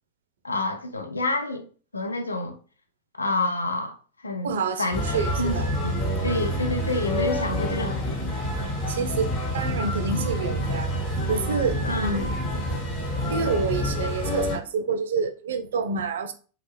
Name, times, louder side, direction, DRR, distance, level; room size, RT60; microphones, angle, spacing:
voice 1, 0.4-1.7 1.9-2.6 3.2-4.0 4.2-4.5 4.8-8.0 11.8-12.2, left 2 dB, 80° left, 0.4 m, -28 dB
voice 2, 4.4-5.7 8.9-10.9 11.3-12.3 13.3-16.3, right 5 dB, 60° right, 0.4 m, -28 dB
sound 1, 4.9-14.6, equal, 35° left, 1.0 m, -27 dB
2.3 x 2.1 x 3.2 m
figure-of-eight pair, 90°, 0 cm